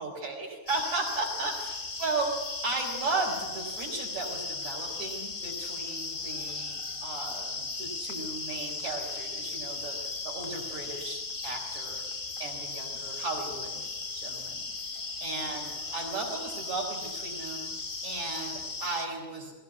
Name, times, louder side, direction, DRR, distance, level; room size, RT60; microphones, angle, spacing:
voice 1, 0.0-1.5 2.0-12.0 12.4-13.9 14.1-17.7 18.0-19.5, right 3 dB, 65° right, -4 dB, 5.5 m, -35 dB
sound 1, 0.7-19.1, left 3 dB, 55° left, 0.5 m, -37 dB
20.5 x 18.5 x 9.5 m, 1.2 s
omnidirectional pair, 3.6 m